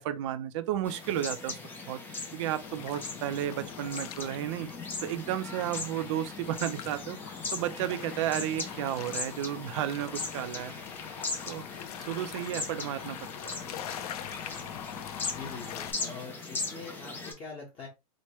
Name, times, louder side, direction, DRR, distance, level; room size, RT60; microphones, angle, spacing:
voice 1, 0.0-1.6 1.9-4.7 5.0-10.7 11.5-11.7 12.0-13.5, right 11 dB, 50° right, 0.4 m, -33 dB
sound 1, 0.8-17.3, left 3 dB, 10° left, 0.4 m, -39 dB
sound 2, 2.6-15.9, left 10 dB, 80° left, 0.4 m, -44 dB
voice 2, 15.3-17.9, left 4 dB, 25° left, 1.1 m, -43 dB
3.1 x 2.1 x 3.0 m
supercardioid pair, 155°, 19 cm